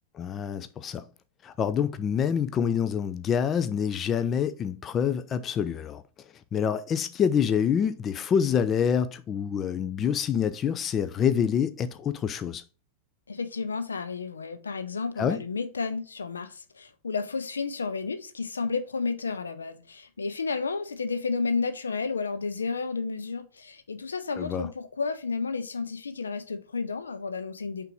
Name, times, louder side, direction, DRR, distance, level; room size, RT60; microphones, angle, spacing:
voice 1, 0.1-1.0 1.4-6.0 6.5-12.6 15.2-15.4 24.4-24.7, left 8 dB, 25° left, 0.4 m, -26 dB
voice 2, 13.3-27.9, left 4 dB, 75° left, 0.7 m, -32 dB
5.7 x 3.4 x 4.9 m
figure-of-eight pair, 90°, 0 cm